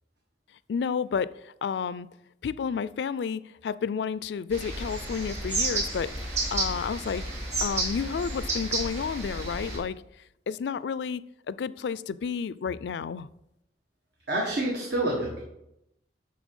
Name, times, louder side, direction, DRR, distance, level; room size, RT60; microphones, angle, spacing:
voice 1, 0.7-2.1 2.4-6.1 6.5-7.2 7.6-10.0 10.5-13.3, left 6 dB, 75° left, 0.3 m, -31 dB
sound 1, 4.5-9.8, right 2 dB, 40° right, 3.1 m, -31 dB
voice 2, 14.3-15.4, right 1 dB, 70° right, 1.7 m, -27 dB
11.0 x 4.4 x 5.4 m
head